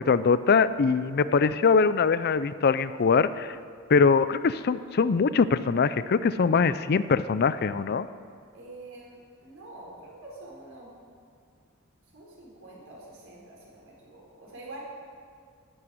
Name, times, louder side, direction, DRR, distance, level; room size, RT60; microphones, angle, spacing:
voice 1, 0.0-3.6 3.9-8.1, left 5 dB, 50° left, 14 dB, 0.4 m, -22 dB
voice 2, 8.5-11.0 12.1-14.8, right 2 dB, 85° right, -4 dB, 4.4 m, -46 dB
11.0 x 8.7 x 9.2 m, 2.1 s
head